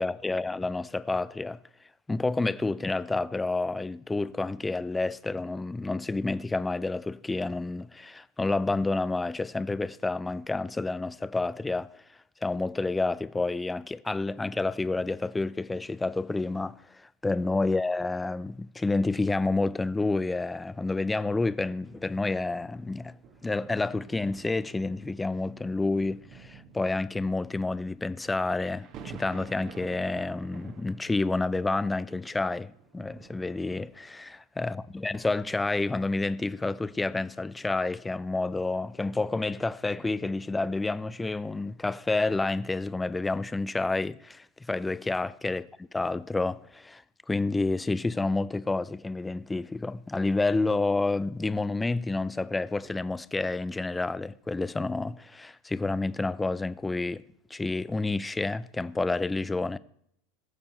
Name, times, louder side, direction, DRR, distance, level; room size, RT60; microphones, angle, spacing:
voice 1, 0.0-1.6 2.1-11.9 12.4-23.1 23.4-34.3 34.6-47.0 47.3-57.2 57.5-59.8, left 3 dB, 10° left, 0.4 m, -29 dB
sound 1, 21.4-34.2 34.9-35.0, right 6 dB, 40° right, 1.4 m, -51 dB
20.5 x 7.0 x 4.3 m
figure-of-eight pair, 85°, 0 cm